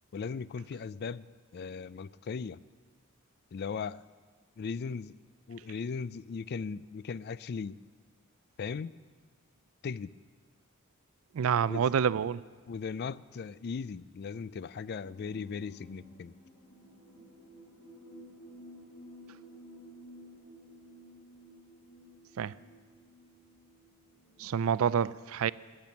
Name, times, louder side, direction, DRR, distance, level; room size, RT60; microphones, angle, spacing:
voice 1, 0.1-1.3 1.5-2.6 3.5-4.0 4.6-5.1 5.5-7.8 8.6-8.9 9.8-10.1 11.7-11.9 12.7-16.3, left 5 dB, 45° left, 18 dB, 0.3 m, -38 dB
voice 2, 11.3-12.4 22.4-22.5 24.4-25.5, right 7 dB, 65° right, 18 dB, 0.4 m, -28 dB
sound 1, 15.0-24.9, equal, 75° left, 4.3 m, -53 dB
14.0 x 8.7 x 9.3 m, 1.5 s
head